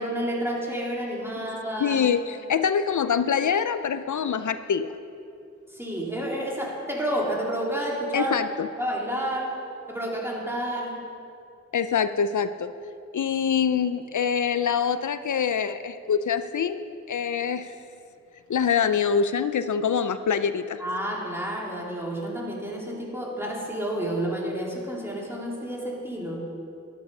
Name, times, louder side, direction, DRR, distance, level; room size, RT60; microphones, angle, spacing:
voice 1, 0.0-2.0 5.7-8.4 8.8-9.6 9.9-11.1 20.8-26.5, right 1 dB, 10° right, -4 dB, 3.0 m, -30 dB
voice 2, 1.8-4.9 8.1-8.7 11.7-12.7 13.1-16.8 17.1-17.7 18.5-20.8, left 7 dB, 90° left, 11 dB, 0.5 m, -25 dB
12.0 x 11.0 x 5.4 m, 2.5 s
wide cardioid pair, 50°, 29 cm